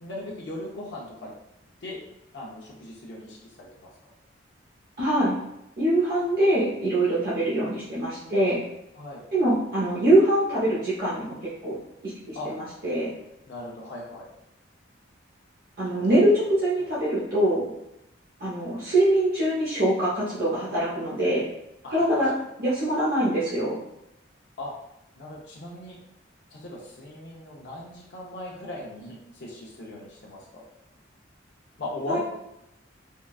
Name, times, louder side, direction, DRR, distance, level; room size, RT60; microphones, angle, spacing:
voice 1, 0.0-1.3 1.8-2.0 2.3-3.9 8.9-9.2 12.3-12.5 13.5-14.3 15.9-16.2 21.8-22.1 24.6-24.7 25.2-26.0 26.5-30.6 31.8-32.2, left 1 dB, 60° left, -3 dB, 0.6 m, -38 dB
voice 2, 5.0-5.4 5.8-8.6 9.3-11.8 12.3-13.1 15.8-17.7 18.4-21.4 21.9-22.3 22.6-23.8 32.1-32.2, right 1 dB, 50° right, -9 dB, 0.8 m, -23 dB
3.6 x 2.3 x 2.3 m, 0.86 s
head